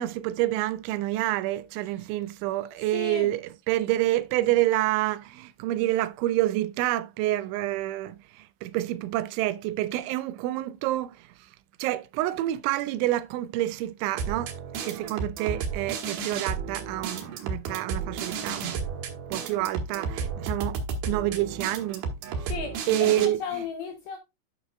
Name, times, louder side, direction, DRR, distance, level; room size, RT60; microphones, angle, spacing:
voice 1, 0.0-8.2 8.6-11.2 11.8-14.5 14.8-18.8 19.3-22.4 22.9-23.6, right 15 dB, 85° right, 3.0 m, -28 dB
voice 2, 2.8-3.3 4.4-4.5 22.5-24.2, left 6 dB, 75° left, 2.2 m, -35 dB
sound 1, 14.2-23.3, right 5 dB, 65° right, 3.2 m, -33 dB
11.0 x 6.4 x 2.3 m
omnidirectional pair, 5.4 m